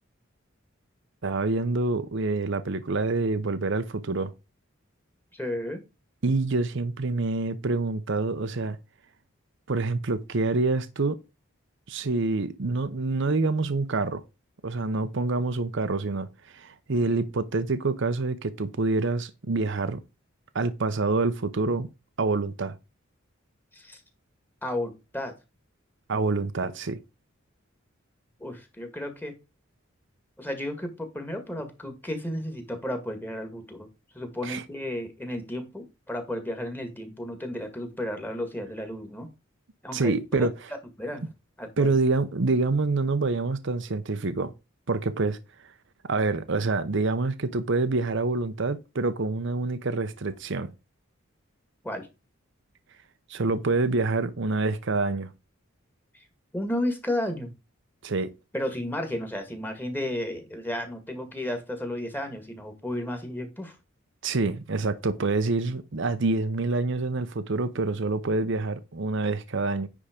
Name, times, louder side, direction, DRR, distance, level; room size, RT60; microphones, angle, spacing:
voice 1, 1.2-4.3 6.2-8.8 9.7-11.2 11.9-14.2 14.6-20.0 20.5-21.9 22.2-22.8 26.1-27.0 34.4-34.6 39.9-40.5 41.8-44.5 44.9-45.4 46.1-50.7 53.3-55.3 58.0-58.3 64.2-69.9, right 3 dB, 60° right, 0.8 m, -26 dB
voice 2, 5.3-5.8 23.7-24.0 24.6-25.3 28.4-29.3 30.4-33.9 34.1-39.3 39.8-40.1 40.4-40.5 41.0-41.3 41.6-41.9 51.8-52.1 56.5-57.5 58.5-63.8, left 1 dB, 10° left, 1.8 m, -33 dB
10.0 x 3.7 x 5.1 m
head